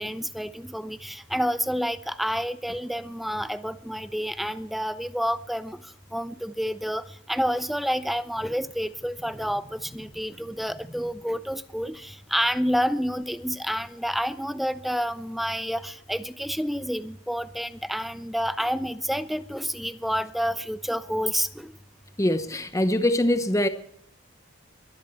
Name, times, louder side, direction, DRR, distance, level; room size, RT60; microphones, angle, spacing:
voice 1, 0.0-5.8 6.1-21.7, equal, ahead, 0.5 m, -29 dB
voice 2, 22.2-23.7, left 1 dB, 15° left, 0.9 m, -23 dB
22.0 x 11.0 x 4.5 m
head